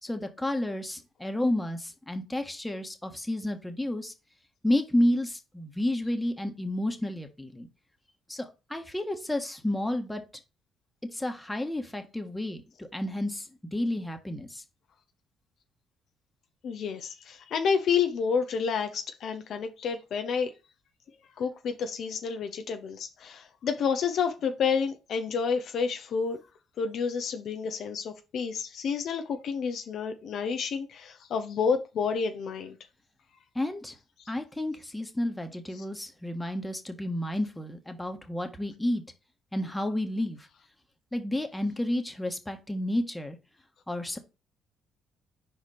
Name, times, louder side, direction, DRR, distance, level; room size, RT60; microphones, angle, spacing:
voice 1, 0.0-4.1 4.6-7.7 8.3-10.2 11.1-14.6 33.5-33.9 34.3-39.0 39.5-40.5 41.1-43.4 43.9-44.2, left 1 dB, 10° left, 1.5 m, -31 dB
voice 2, 16.6-20.5 21.4-26.4 26.8-32.8 35.8-35.9, left 6 dB, 65° left, 0.8 m, -29 dB
4.8 x 4.5 x 5.0 m
supercardioid pair, 65°, 0 cm